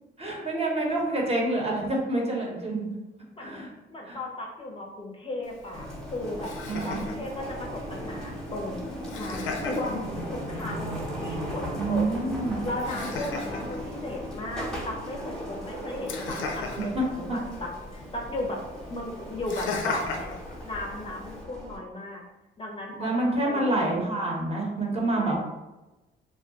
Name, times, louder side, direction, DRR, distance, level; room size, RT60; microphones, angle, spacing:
voice 1, 0.2-2.9 3.4-3.7 4.1-4.2 6.6-7.0 11.7-12.6 16.9-17.0 17.3-17.4 23.0-25.4, right 2 dB, 30° right, -2 dB, 0.9 m, -27 dB
voice 2, 3.9-6.5 6.8-8.8 9.1-12.1 12.6-18.6 18.9-20.4 20.6-22.2 22.6-23.6 25.0-25.4, left 1 dB, 30° left, -1 dB, 0.5 m, -36 dB
Laughter, 5.4-21.4, left 4 dB, 85° left, 0.5 m, -39 dB
sound 1, 5.7-21.8, equal, 5° left, 0.8 m, -37 dB
2.3 x 2.1 x 3.8 m, 1.1 s
cardioid pair, 90°, 20 cm